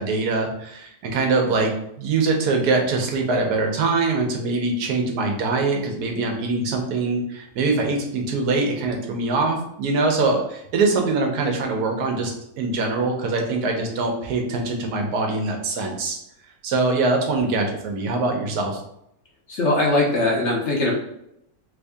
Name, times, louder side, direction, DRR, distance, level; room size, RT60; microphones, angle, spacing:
voice 1, 0.0-16.2 16.6-18.8, right 3 dB, 85° right, 2 dB, 1.3 m, -23 dB
voice 2, 19.5-20.9, left 2 dB, 60° left, -2 dB, 0.9 m, -20 dB
3.2 x 2.6 x 3.4 m, 0.77 s
omnidirectional pair, 1.6 m